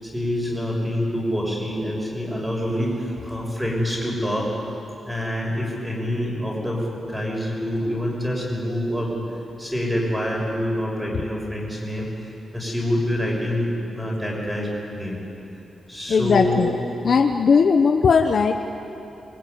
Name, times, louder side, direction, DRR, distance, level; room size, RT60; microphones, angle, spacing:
voice 1, 0.0-4.5 5.1-9.2 9.6-12.1 12.5-15.2 15.9-16.6, equal, 5° right, -2 dB, 6.4 m, -26 dB
voice 2, 16.1-16.7 17.0-18.5, left 5 dB, 50° left, 5 dB, 1.1 m, -18 dB
26.0 x 22.5 x 9.6 m, 2.9 s
wide cardioid pair, 170°, 0 cm